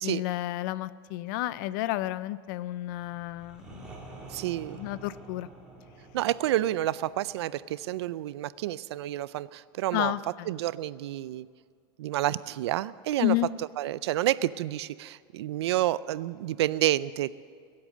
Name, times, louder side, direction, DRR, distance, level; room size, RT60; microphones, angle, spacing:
voice 1, 0.0-3.6 4.8-5.5 9.9-10.5 13.2-13.5, left 16 dB, 50° left, 17 dB, 0.5 m, -31 dB
sound 1, 2.8-8.6, right 2 dB, 5° right, 3.1 m, -49 dB
voice 2, 4.3-4.8 6.1-10.2 10.4-11.5 12.0-17.3, right 14 dB, 85° right, 18 dB, 0.5 m, -29 dB
21.0 x 8.7 x 7.5 m, 2.1 s
supercardioid pair, 160°, 14 cm